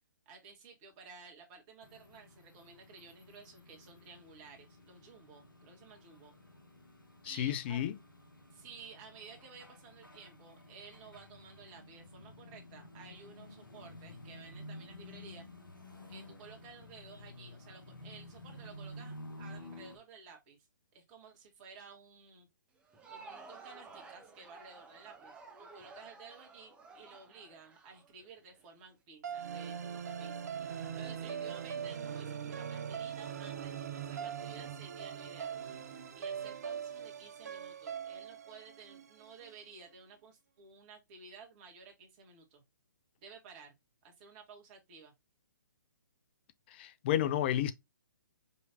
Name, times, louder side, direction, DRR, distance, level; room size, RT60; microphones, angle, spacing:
voice 1, 0.2-6.4 7.2-7.9 8.5-15.5 16.1-20.6 20.9-22.5 23.1-25.3 25.6-30.3 30.7-35.6 36.2-42.6 43.2-43.7 44.0-45.1, right 5 dB, 30° right, 1.8 m, -54 dB
sound 1, 1.8-20.0, left 1 dB, 85° left, 1.5 m, -52 dB
voice 2, 7.2-8.0 46.7-47.7, left 11 dB, 30° left, 0.5 m, -31 dB
Crowd, 22.8-28.7, right 4 dB, 10° right, 0.9 m, -53 dB
sound 2, 29.2-39.5, right 7 dB, 55° right, 0.6 m, -41 dB
5.3 x 3.1 x 2.8 m
figure-of-eight pair, 130°, 11 cm